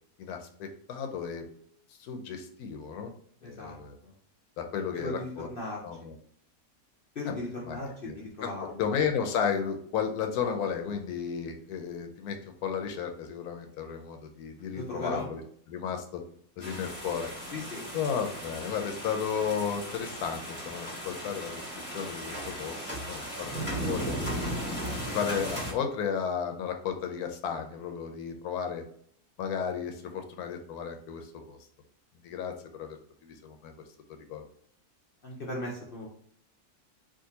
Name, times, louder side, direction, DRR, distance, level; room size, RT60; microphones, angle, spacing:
voice 1, 0.2-1.5 2.0-3.1 3.4-4.0 4.6-5.5 5.8-6.2 7.3-7.4 7.7-7.8 8.0-15.4 15.7-16.2 16.6-17.3 17.9-21.6 21.9-24.5 25.0-28.8 29.4-31.6 32.2-33.0 33.2-33.7 34.3-34.4, left 7 dB, 80° left, 5 dB, 1.1 m, -33 dB
voice 2, 3.4-4.1 4.9-5.8 7.1-8.8 14.7-15.3 17.5-17.9 35.2-36.1, left 2 dB, 50° left, -3 dB, 0.7 m, -37 dB
sound 1, 16.6-25.7, equal, 10° right, 0.9 m, -36 dB
3.5 x 2.6 x 2.8 m, 0.63 s
omnidirectional pair, 1.6 m